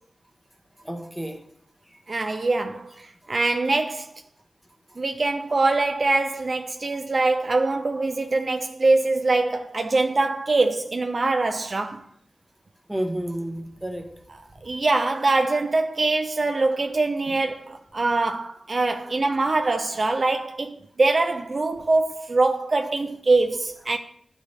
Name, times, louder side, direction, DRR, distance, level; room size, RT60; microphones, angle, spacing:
voice 1, 0.9-1.4 12.9-14.0 23.9-24.0, right 1 dB, 5° right, 1.1 m, -30 dB
voice 2, 2.1-4.1 5.0-12.0 14.3-24.0, right 3 dB, 45° right, 0.4 m, -23 dB
11.0 x 4.1 x 3.4 m
wide cardioid pair, 90°, 0 cm